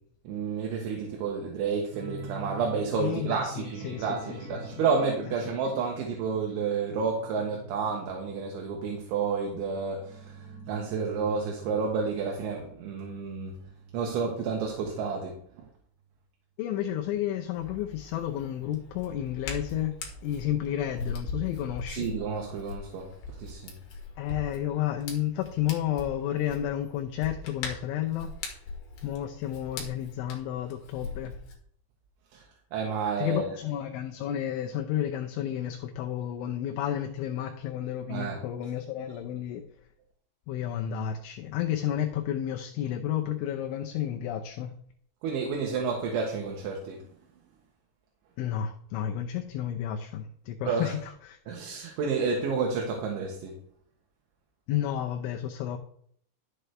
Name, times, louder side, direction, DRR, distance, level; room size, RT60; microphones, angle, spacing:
voice 1, 0.3-10.3 10.7-13.6 13.9-15.4 21.9-23.1 23.4-23.7 32.3-32.4 32.7-33.6 38.1-38.4 45.2-47.0 50.7-50.9 51.5-53.6, right 5 dB, 75° right, 0 dB, 3.5 m, -30 dB
sound 1, 1.9-15.2 15.5-15.7 16.0-16.1, right 4 dB, 55° right, 2.4 m, -46 dB
voice 2, 3.0-4.5 4.7-4.8 16.6-20.0 20.2-22.1 24.2-28.3 29.0-31.3 33.2-39.6 40.5-44.7 48.4-51.6 54.7-55.8, left 11 dB, 80° left, 4 dB, 3.0 m, -31 dB
Hands, 17.5-31.5, left 3 dB, 55° left, 3.0 m, -41 dB
12.5 x 8.1 x 3.4 m, 0.64 s
omnidirectional pair, 5.7 m